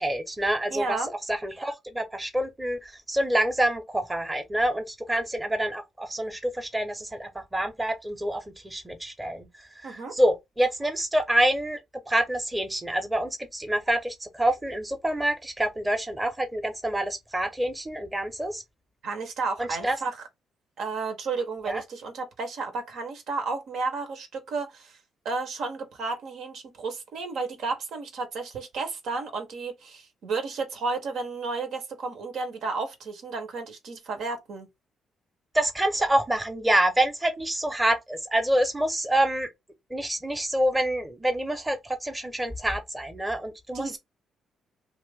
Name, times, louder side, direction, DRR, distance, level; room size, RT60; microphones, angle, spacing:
voice 1, 0.0-1.0 1.3-9.5 9.8-11.8 12.1-18.6 19.6-20.0 21.7-21.8 35.5-39.5 39.9-44.0, right 1 dB, 10° right, 0.8 m, -27 dB
voice 2, 0.7-1.1 9.8-10.1 19.0-20.2 20.8-25.0 25.2-34.7 43.7-44.0, right 4 dB, 70° right, 1.0 m, -32 dB
2.9 x 2.5 x 3.4 m
cardioid pair, 90°, 0 cm